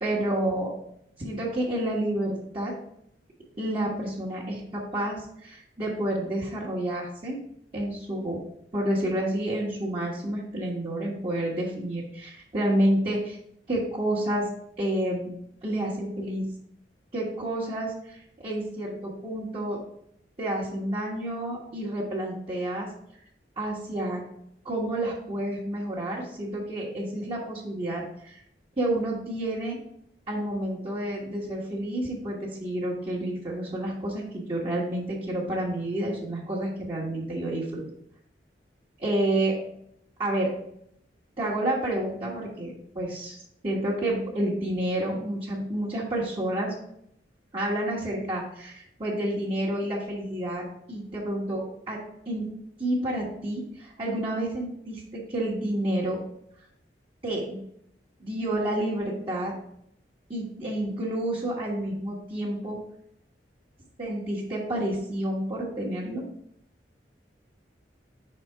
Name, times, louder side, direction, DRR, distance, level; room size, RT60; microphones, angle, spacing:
voice 1, 0.0-0.7 1.2-2.7 3.6-7.4 7.7-8.4 8.7-13.4 13.7-14.5 14.8-15.3 15.6-16.4 17.1-18.2 18.4-19.8 20.4-22.9 23.6-24.2 24.6-28.4 28.8-29.8 30.3-37.8 39.0-39.6 40.2-40.5 41.4-43.4 43.6-46.7 47.5-52.0 52.3-52.5 52.8-56.2 57.2-57.6 58.2-59.5 60.3-62.8 64.0-66.2, right 1 dB, 30° right, -8 dB, 1.4 m, -29 dB
5.6 x 4.3 x 4.4 m, 0.72 s
head